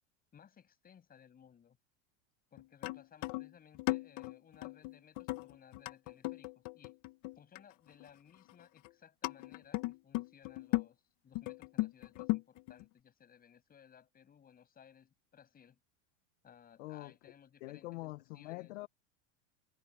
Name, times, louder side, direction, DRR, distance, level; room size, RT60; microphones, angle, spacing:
voice 1, 0.3-1.8 2.5-6.9 7.3-15.8 16.4-18.0 18.3-18.7, left 8 dB, 25° left, 6.6 m, -61 dB
sound 1, 2.6-7.7 8.0-8.1 8.5-8.9 9.2-10.9 11.3-12.8, left 21 dB, 50° left, 0.8 m, -37 dB
voice 2, 16.8-17.3 17.6-18.9, left 20 dB, 80° left, 0.9 m, -45 dB
supercardioid pair, 145°, 36 cm